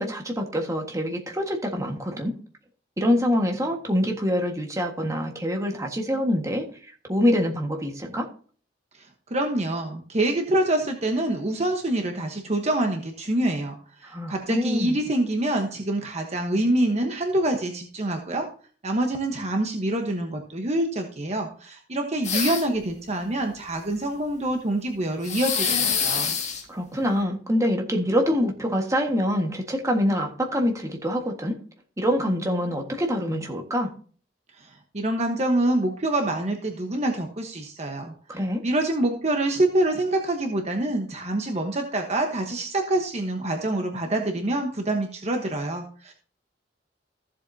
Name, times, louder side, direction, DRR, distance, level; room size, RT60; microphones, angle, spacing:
voice 1, 0.0-2.3 3.0-6.7 7.1-8.3 14.0-15.0 26.7-31.6 32.0-33.9 38.3-38.6, equal, 20° right, 2 dB, 1.6 m, -25 dB
voice 2, 8.9-18.5 18.8-26.3 34.6-46.1, right 1 dB, 40° right, 3 dB, 1.1 m, -26 dB
sound 1, 22.2-22.8 25.2-26.6, left 6 dB, 40° left, 1.8 m, -25 dB
14.5 x 7.6 x 2.8 m, 0.43 s
head